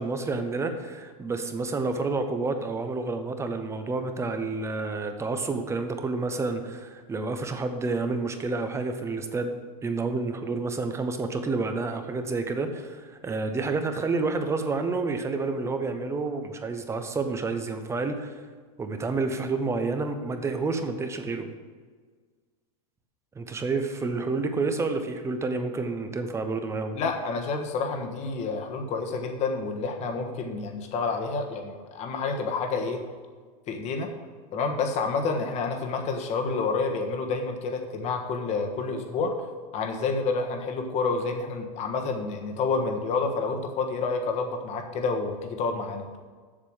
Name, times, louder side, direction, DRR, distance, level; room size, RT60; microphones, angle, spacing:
voice 1, 0.0-18.4 18.8-21.5 23.3-27.0, right 3 dB, 15° right, 7 dB, 0.9 m, -29 dB
voice 2, 26.9-33.0 33.7-34.1 34.5-39.3 39.7-46.1, left 4 dB, 35° left, 4 dB, 1.4 m, -29 dB
7.5 x 6.8 x 6.3 m, 1.5 s
supercardioid pair, 130°, 19 cm